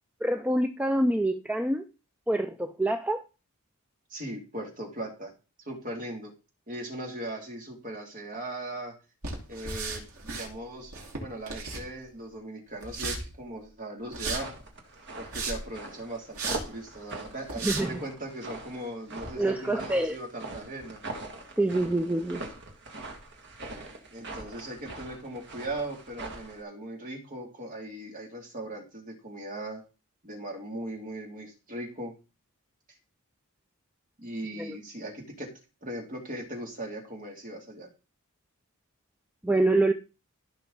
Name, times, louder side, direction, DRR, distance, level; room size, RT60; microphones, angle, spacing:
voice 1, 0.2-1.8 2.3-3.2 17.6-18.0 19.4-20.2 21.6-22.4 34.6-34.8 39.4-39.9, right 1 dB, 5° right, 6 dB, 0.5 m, -26 dB
voice 2, 4.1-5.3 5.7-6.3 6.7-8.9 9.5-14.5 15.2-21.0 24.1-29.8 30.2-32.1 34.2-35.5 35.8-37.9, right 1 dB, 40° right, 1 dB, 2.9 m, -39 dB
sound 1, 9.2-10.5 10.8-12.2 12.8-13.2 14.1-14.4 15.1-15.7 16.3-16.6 17.1-17.2 17.5-17.8, right 4 dB, 80° right, 3.6 m, -34 dB
sound 2, 14.2-26.6, right 2 dB, 55° right, 2.1 m, -42 dB
15.0 x 5.7 x 4.0 m, 0.32 s
head